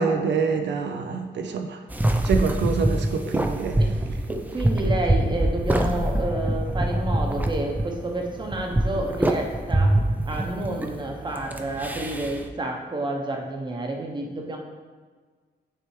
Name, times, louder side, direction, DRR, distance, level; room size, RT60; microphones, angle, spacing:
voice 1, 0.0-1.8 2.2-3.8, right 5 dB, 80° right, 5 dB, 0.5 m, -25 dB
sound 1, 1.9-12.5, right 1 dB, 10° right, 0.4 m, -25 dB
voice 2, 4.3-10.0 10.2-14.6, right 1 dB, 25° right, 1 dB, 0.8 m, -30 dB
9.8 x 3.4 x 3.1 m, 1.5 s
wide cardioid pair, 145°, 18 cm